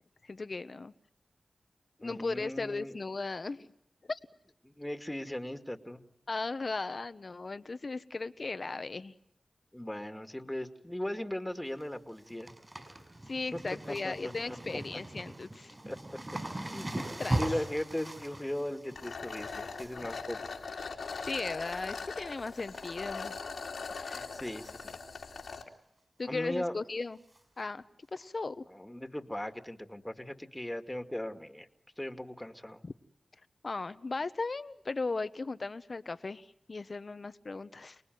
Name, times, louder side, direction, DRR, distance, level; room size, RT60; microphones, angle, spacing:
voice 1, 0.2-0.9 2.0-3.7 4.1-4.2 6.3-9.1 13.3-15.8 17.2-17.6 21.2-23.3 23.9-24.3 26.2-27.2 27.6-27.9 28.1-28.6 32.8-32.9 33.6-38.0, left 3 dB, 60° left, 12 dB, 1.1 m, -37 dB
voice 2, 2.0-3.0 4.6-6.0 9.7-12.5 13.5-13.6 13.9-14.6 15.9-16.0 16.7-20.5 24.1-25.0 26.3-26.7 28.7-31.7 32.0-32.8, left 1 dB, 15° left, 7 dB, 2.2 m, -38 dB
sound 1, 11.5-11.8 12.1-21.3 21.7-22.1 22.4-23.2 23.6-23.7 24.6-24.9 25.2-25.3 25.6-25.7 27.3-27.4 28.2-28.3, right 1 dB, 30° right, 5.6 m, -40 dB
sound 2, 19.0-25.6, left 4 dB, 90° left, 2.8 m, -41 dB
29.0 x 19.5 x 9.4 m, 0.75 s
cardioid pair, 40°, 0 cm